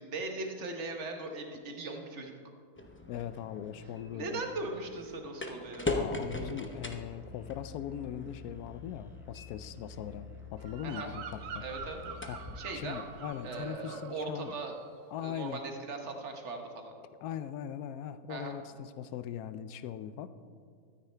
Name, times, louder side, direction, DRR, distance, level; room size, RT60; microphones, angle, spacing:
voice 1, 0.0-2.3 4.1-5.9 10.8-11.1 11.6-12.2 12.6-13.0 13.4-14.7 15.2-16.9 18.3-18.6, right 3 dB, 50° right, 4 dB, 1.3 m, -39 dB
sound 1, 2.8-13.7, left 2 dB, 15° left, 0.4 m, -42 dB
voice 2, 3.1-4.4 5.9-11.6 12.3-12.4 12.7-14.5 15.1-15.6 17.2-20.3, left 9 dB, 80° left, 13 dB, 1.1 m, -40 dB
Musical instrument, 6.7-12.6, left 4 dB, ahead, 0.8 m, -50 dB
Bird vocalization bird call bird song, 10.6-14.1 14.4-14.8, right 6 dB, 85° right, 1.3 m, -46 dB
13.0 x 9.0 x 4.4 m, 2.1 s
omnidirectional pair, 1.6 m